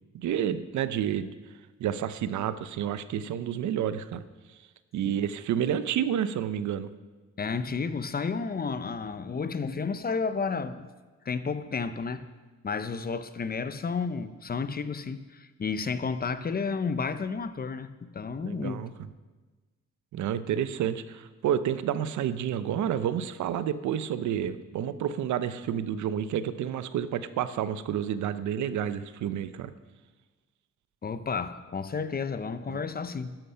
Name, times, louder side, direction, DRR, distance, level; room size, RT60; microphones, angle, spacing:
voice 1, 0.1-1.4 1.8-4.2 4.9-6.9 18.4-18.9 20.1-29.7 32.7-32.8, right 9 dB, 75° right, 13 dB, 0.8 m, -30 dB
voice 2, 7.4-10.9 11.2-12.3 12.6-18.8 31.0-33.4, left 5 dB, 30° left, 12 dB, 0.8 m, -32 dB
12.5 x 11.0 x 5.7 m, 1.3 s
cardioid pair, 90°, 30 cm